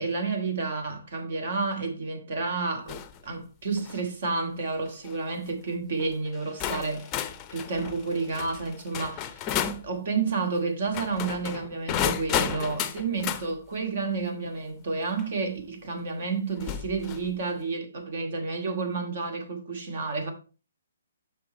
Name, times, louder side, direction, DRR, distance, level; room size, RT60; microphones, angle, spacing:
voice 1, 0.0-7.1 7.5-9.5 9.8-20.3, right 4 dB, 60° right, 2.1 m, -30 dB
sound 1, 2.9-3.2 3.7-4.0 4.9-5.1 6.0-6.1 6.6-9.9 10.8-13.5 15.2-15.3 16.6-17.3, left 9 dB, 20° left, 0.6 m, -32 dB
6.8 x 5.9 x 4.1 m
hypercardioid pair, 150°, 0 cm